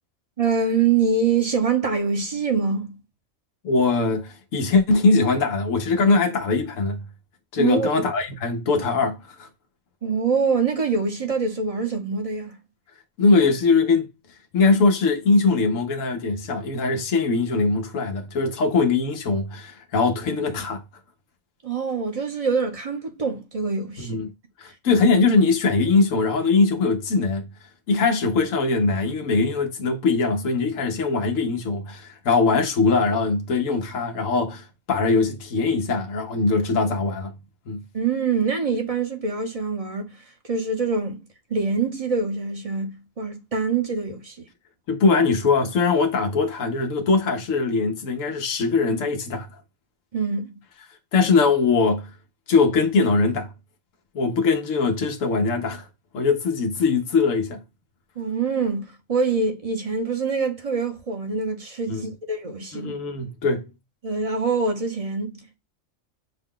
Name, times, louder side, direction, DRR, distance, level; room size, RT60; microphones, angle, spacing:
voice 1, 0.4-2.9 7.6-7.9 10.0-12.6 21.6-24.2 37.9-40.1 40.4-41.2 41.5-44.4 50.1-50.5 58.2-62.9 64.0-65.6, right 5 dB, 35° right, 0.8 m, -25 dB
voice 2, 3.6-7.0 7.5-9.5 13.2-14.1 14.5-20.8 24.0-24.3 24.6-27.5 27.9-37.3 37.7-37.8 44.9-49.5 51.1-52.1 52.5-53.5 54.1-55.8 56.1-57.6 61.9-62.1 62.7-63.7, left 4 dB, 90° left, 1.2 m, -21 dB
5.8 x 2.3 x 3.6 m
omnidirectional pair, 1.3 m